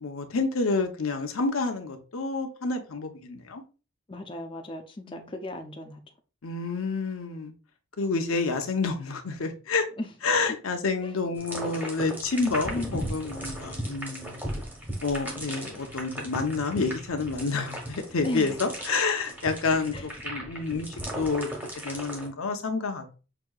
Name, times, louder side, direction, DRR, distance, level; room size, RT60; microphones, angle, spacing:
voice 1, 0.0-3.6 5.1-5.3 6.4-7.5 8.0-9.9 10.2-14.4 15.0-20.9 21.2-21.5 21.8-23.2, left 4 dB, 85° left, 0.8 m, -29 dB
voice 2, 4.1-6.0 10.0-10.1 11.0-11.1 18.2-18.6 19.9-20.0, left 1 dB, 25° left, 0.5 m, -36 dB
sound 1, 11.4-22.3, right 1 dB, 10° right, 0.9 m, -37 dB
5.9 x 2.7 x 2.3 m
head